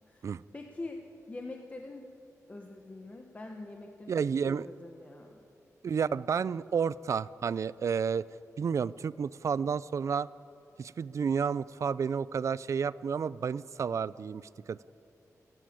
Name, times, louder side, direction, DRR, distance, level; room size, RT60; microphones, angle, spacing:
voice 1, 0.5-1.0 1.3-2.1 2.5-4.1 4.4-5.4, left 2 dB, 25° left, 2 dB, 1.1 m, -44 dB
voice 2, 4.1-4.7 5.8-8.3 8.6-10.3 10.8-14.8, right 6 dB, 55° right, 19 dB, 0.4 m, -31 dB
28.5 x 11.0 x 8.7 m, 2.8 s
wide cardioid pair, 165°, 6 cm